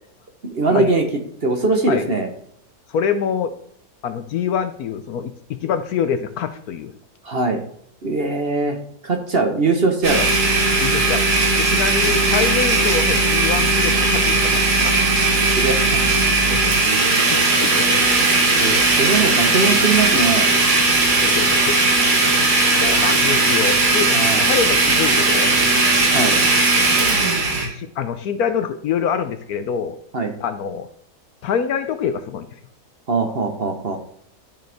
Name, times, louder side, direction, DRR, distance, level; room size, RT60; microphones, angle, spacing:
voice 1, 0.4-1.0 1.4-2.3 7.2-7.6 8.0-8.8 9.0-10.2 15.4-16.0 18.6-20.5 24.1-24.4 26.1-26.3 30.1-30.3 33.1-34.0, right 3 dB, 40° right, 4 dB, 1.1 m, -21 dB
voice 2, 2.9-3.5 4.0-6.9 10.2-10.3 10.8-11.3 11.6-15.0 16.4-16.7 17.1-18.2 21.2-21.8 22.7-26.4 27.6-30.0 30.4-30.9 31.4-32.5, left 7 dB, 70° left, 10 dB, 1.1 m, -25 dB
Domestic sounds home sounds, 10.0-27.7, right 3 dB, 70° right, 2.4 m, -17 dB
12.5 x 6.5 x 3.5 m, 0.65 s
omnidirectional pair, 1.8 m